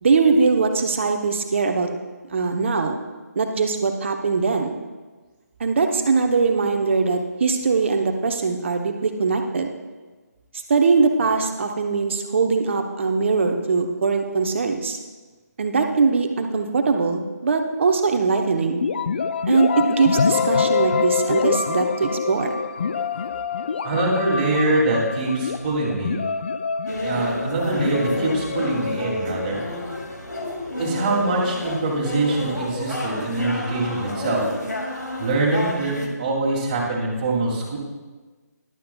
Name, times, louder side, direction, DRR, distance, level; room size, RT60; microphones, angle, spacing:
voice 1, 0.0-1.9 2.3-3.0 3.3-4.7 5.6-9.7 10.7-15.0 15.6-18.8 19.5-22.5, right 4 dB, 45° right, 5 dB, 1.0 m, -21 dB
sound 1, 18.8-30.5, left 6 dB, 35° left, 0.3 m, -26 dB
voice 2, 23.8-26.2 27.0-29.6 30.8-34.4 35.2-37.8, right 2 dB, 25° right, -4 dB, 2.5 m, -24 dB
sound 2, 26.9-36.1, left 1 dB, 80° left, 2.3 m, -30 dB
14.5 x 11.5 x 2.3 m, 1.3 s
figure-of-eight pair, 150°, 9 cm